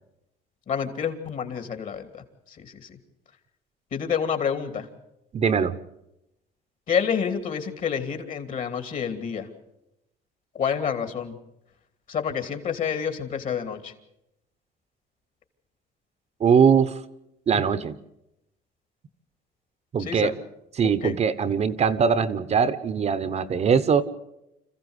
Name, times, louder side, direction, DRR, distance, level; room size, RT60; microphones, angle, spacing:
voice 1, 0.7-3.0 3.9-4.9 6.9-9.5 10.5-11.4 12.1-13.9 20.0-20.3 21.0-21.1, left 7 dB, 50° left, 8 dB, 2.8 m, -28 dB
voice 2, 5.3-5.7 16.4-17.0 17.5-17.9 19.9-20.3 20.8-24.1, right 6 dB, 40° right, 13 dB, 1.1 m, -21 dB
26.5 x 15.0 x 8.2 m, 0.88 s
cardioid pair, 110°, 17 cm